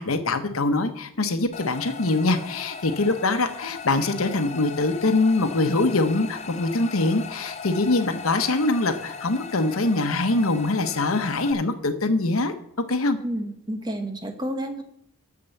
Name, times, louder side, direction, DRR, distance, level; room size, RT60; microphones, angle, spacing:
voice 1, 0.0-12.5 12.9-13.2, left 2 dB, 90° left, 9 dB, 1.0 m, -23 dB
sound 1, 1.5-11.5, left 5 dB, 30° left, 0.5 m, -38 dB
voice 2, 13.2-14.8, right 1 dB, 20° right, 5 dB, 1.0 m, -30 dB
8.6 x 6.8 x 7.0 m, 0.73 s
head